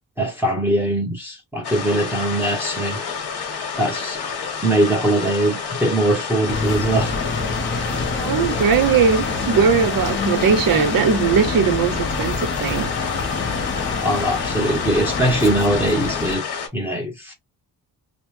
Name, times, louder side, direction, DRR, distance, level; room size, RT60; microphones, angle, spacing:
voice 1, 0.2-3.0 3.8-4.2 4.6-7.2 14.0-16.4 16.7-17.3, right 1 dB, 5° right, 0.9 m, -21 dB
sound 1, 1.6-16.7, left 6 dB, 75° left, 1.3 m, -29 dB
sound 2, 6.5-16.3, left 4 dB, 30° left, 0.6 m, -26 dB
voice 2, 8.1-12.9, right 6 dB, 60° right, 0.8 m, -19 dB
3.0 x 2.1 x 3.3 m
cardioid pair, 120°, 38 cm